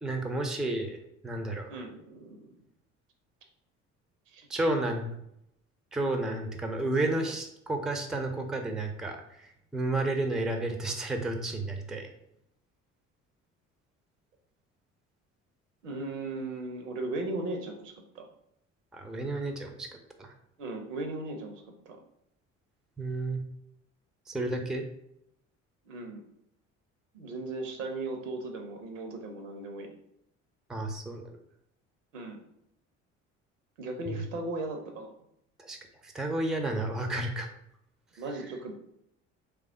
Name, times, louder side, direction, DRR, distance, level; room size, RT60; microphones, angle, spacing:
voice 1, 0.0-1.0 1.2-1.7 4.5-5.1 5.9-12.1 18.9-19.9 20.2-20.3 23.0-23.4 24.3-24.8 30.7-31.4 34.1-34.2 35.6-35.8 36.0-37.5, right 2 dB, ahead, 5 dB, 0.4 m, -31 dB
voice 2, 1.7-2.6 4.3-4.5 15.8-18.3 20.6-22.0 25.8-26.2 27.1-29.9 32.1-32.4 33.8-35.1 38.2-38.7, right 2 dB, 75° right, 4 dB, 0.7 m, -37 dB
3.2 x 2.3 x 3.6 m, 0.77 s
figure-of-eight pair, 55°, 38 cm